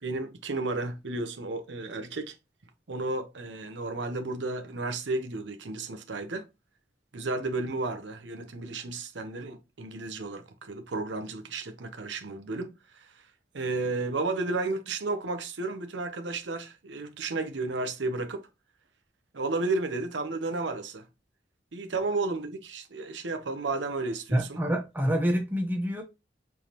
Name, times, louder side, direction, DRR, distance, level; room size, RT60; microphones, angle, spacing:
voice 1, 0.0-2.3 2.9-6.5 7.1-13.2 13.5-18.5 19.3-21.1 21.7-24.6, right 3 dB, 80° right, 0.8 m, -33 dB
voice 2, 24.3-26.0, equal, 10° right, 0.9 m, -27 dB
5.1 x 3.5 x 2.9 m
head